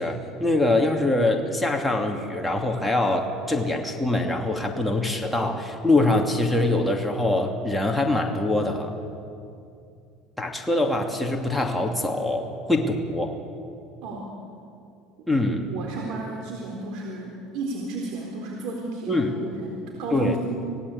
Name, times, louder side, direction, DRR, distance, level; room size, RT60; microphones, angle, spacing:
voice 1, 0.0-8.9 10.4-13.3 15.3-15.6 19.1-19.3 20.1-20.4, left 2 dB, 5° left, 0 dB, 2.6 m, -24 dB
voice 2, 15.7-20.4, right 2 dB, 65° right, 0 dB, 4.0 m, -33 dB
25.5 x 17.5 x 8.5 m, 2.5 s
supercardioid pair, 110°, 0 cm